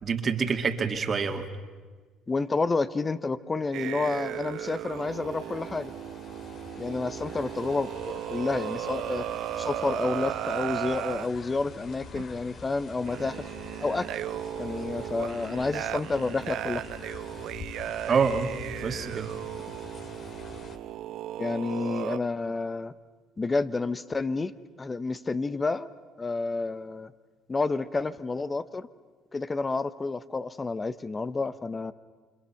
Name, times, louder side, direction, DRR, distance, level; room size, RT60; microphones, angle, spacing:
voice 1, 0.0-1.4 18.1-18.5 18.8-19.3, right 5 dB, 40° right, 6 dB, 2.3 m, -26 dB
voice 2, 2.3-5.9 6.8-9.2 9.6-13.4 13.8-14.2 14.6-16.8 21.4-22.9 23.4-25.9 26.2-27.1 27.5-28.9 29.3-31.9, left 3 dB, 25° left, 14 dB, 1.0 m, -30 dB
sound 1, 3.6-20.8, left 4 dB, 55° left, 2.5 m, -46 dB
sound 2, 3.7-11.3 12.2-12.4 13.1-22.2, right 12 dB, 65° right, 0.7 m, -36 dB
29.5 x 26.0 x 5.9 m, 1.4 s
hypercardioid pair, 65°, 0 cm